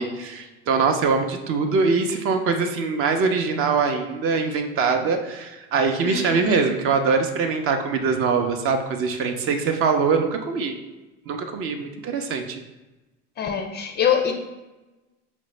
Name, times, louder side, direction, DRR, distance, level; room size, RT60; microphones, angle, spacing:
voice 1, 0.0-10.8 11.3-12.6, right 5 dB, 40° right, 5 dB, 0.5 m, -23 dB
voice 2, 6.0-6.6 13.4-14.3, left 8 dB, 30° left, 4 dB, 0.4 m, -24 dB
4.9 x 2.1 x 3.1 m, 1.1 s
hypercardioid pair, 90°, 34 cm